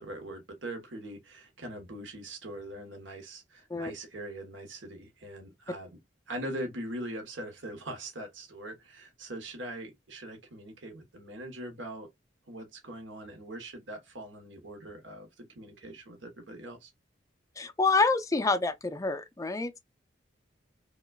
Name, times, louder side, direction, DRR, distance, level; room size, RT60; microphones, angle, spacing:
voice 1, 0.0-6.0 6.3-12.1 12.5-16.9, right 1 dB, 75° right, 1.2 m, -42 dB
voice 2, 17.6-19.8, left 3 dB, 15° left, 0.4 m, -27 dB
5.3 x 2.3 x 2.3 m
head